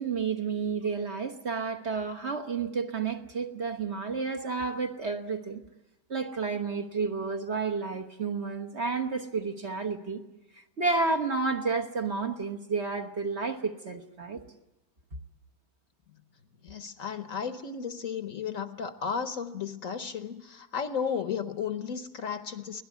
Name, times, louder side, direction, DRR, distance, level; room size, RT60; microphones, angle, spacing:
voice 1, 0.0-5.6 6.1-10.2 10.5-14.4, right 4 dB, 45° right, 4 dB, 1.5 m, -31 dB
voice 2, 16.6-22.8, left 7 dB, 55° left, 9 dB, 1.3 m, -34 dB
24.0 x 17.5 x 8.3 m, 0.98 s
omnidirectional pair, 1.8 m